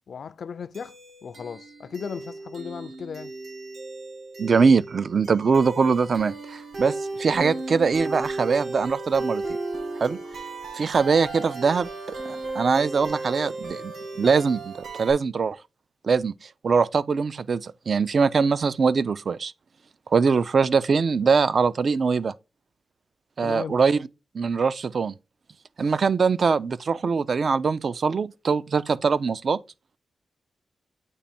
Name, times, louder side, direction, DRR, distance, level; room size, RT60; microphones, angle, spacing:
voice 1, 0.1-1.0 1.2-3.3 23.4-23.8, left 6 dB, 65° left, 0.3 m, -36 dB
sound 1, 0.7-15.1, right 2 dB, 75° right, 1.6 m, -35 dB
voice 2, 4.4-9.4 10.0-10.2 10.7-11.9 12.3-15.6 16.0-16.3 16.6-19.5 20.1-22.3 23.4-24.0 24.3-25.1 25.8-29.6, right 5 dB, 50° right, 0.3 m, -22 dB
8.3 x 3.0 x 4.2 m
wide cardioid pair, 150°, 0 cm